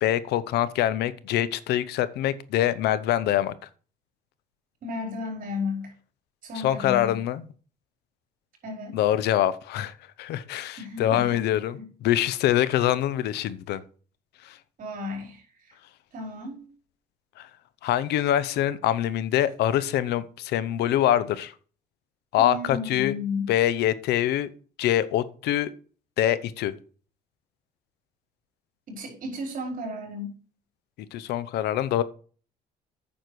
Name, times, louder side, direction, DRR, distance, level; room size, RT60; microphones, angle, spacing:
voice 1, 0.0-3.5 6.5-7.4 8.9-13.8 14.4-14.6 17.4-17.5 17.8-21.5 22.3-23.1 23.5-24.5 24.8-25.7 26.2-26.7 31.1-32.0, left 12 dB, 80° left, 16 dB, 0.8 m, -24 dB
voice 2, 4.8-5.9 6.4-7.1 8.6-9.0 10.8-11.4 11.7-11.8 14.8-15.8 16.1-16.7 22.4-23.4 28.9-30.3, left 3 dB, 55° right, 2 dB, 4.4 m, -33 dB
9.2 x 6.4 x 4.7 m, 0.40 s
cardioid pair, 110°, 17 cm